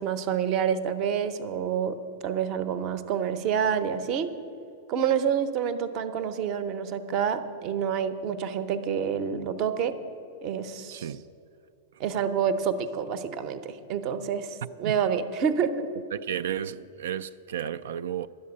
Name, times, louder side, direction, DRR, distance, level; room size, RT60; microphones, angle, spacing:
voice 1, 0.0-2.0 2.2-4.3 4.9-9.9 10.4-11.1 12.0-15.9, right 7 dB, 25° right, 0.6 m, -28 dB
voice 2, 10.9-11.2 14.6-14.9 16.1-18.3, right 9 dB, 90° right, 0.3 m, -33 dB
11.5 x 7.4 x 9.7 m
supercardioid pair, 180°, 0 cm